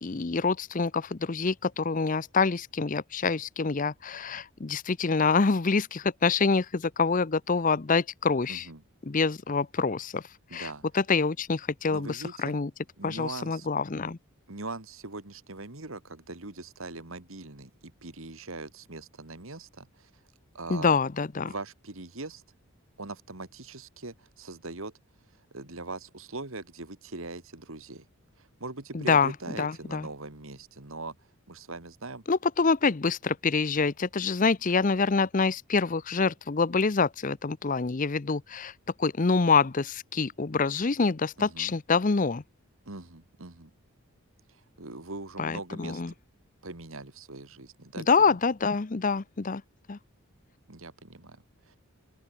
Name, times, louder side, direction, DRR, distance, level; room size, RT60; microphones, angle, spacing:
voice 1, 0.0-8.7 9.0-10.2 10.5-12.7 13.0-14.2 20.7-21.5 28.9-29.3 29.6-30.1 32.3-38.7 39.0-42.4 45.4-46.1 48.0-49.6 49.9-50.0, left 4 dB, 35° left, 0.6 m, -26 dB
voice 2, 8.5-8.8 10.5-10.8 11.9-12.5 13.0-13.7 14.5-20.1 20.5-20.9 21.5-22.4 23.0-24.9 25.5-28.1 28.4-31.2 31.5-32.2 41.4-41.7 42.9-43.7 44.8-46.0 46.6-48.4 50.7-51.4 51.7-51.8, right 3 dB, 65° right, 2.2 m, -41 dB
open air
head